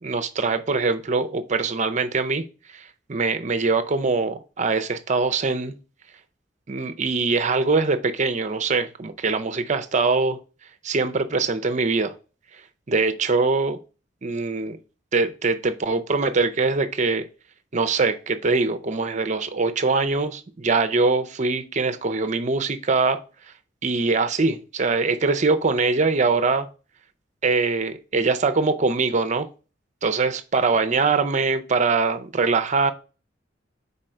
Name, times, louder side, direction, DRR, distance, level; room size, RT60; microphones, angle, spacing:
voice 1, 0.0-2.4 2.7-2.8 3.1-5.7 6.7-10.4 10.8-12.1 12.9-13.8 14.2-14.8 15.1-17.3 17.7-23.2 23.8-26.7 27.4-29.5 30.0-32.9, right 4 dB, 40° right, 0.6 m, -23 dB
5.2 x 4.2 x 4.4 m
head